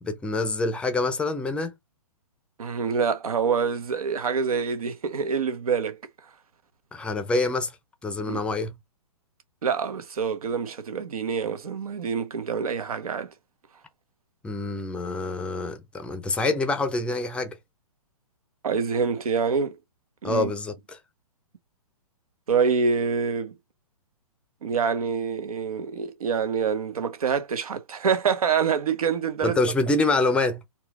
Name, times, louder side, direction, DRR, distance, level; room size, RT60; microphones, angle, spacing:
voice 1, 0.0-1.7 6.9-7.8 8.0-8.7 14.4-17.6 20.2-21.0 29.4-30.6, left 2 dB, 5° left, 0.6 m, -26 dB
voice 2, 2.6-6.0 8.3-8.4 9.6-13.3 18.6-19.8 20.2-20.5 22.5-23.5 24.6-29.6, right 6 dB, 70° right, 1.0 m, -26 dB
4.3 x 2.4 x 3.4 m
hypercardioid pair, 130°, 19 cm